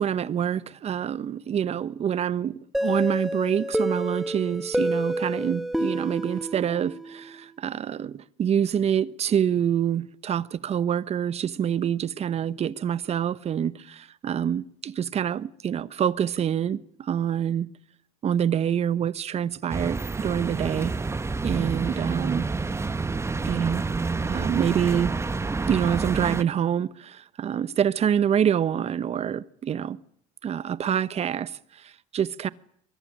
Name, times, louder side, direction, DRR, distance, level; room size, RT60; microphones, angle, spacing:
voice 1, 0.0-17.7 18.2-20.9 21.4-22.5 23.4-23.8 24.3-25.1 25.7-30.0 30.4-32.5, right 9 dB, 45° right, 1.1 m, -26 dB
sound 1, 2.7-7.4, equal, ahead, 1.5 m, -29 dB
sound 2, 19.7-26.4, right 3 dB, 15° right, 1.1 m, -28 dB
22.5 x 22.5 x 9.9 m
supercardioid pair, 95°, 15 cm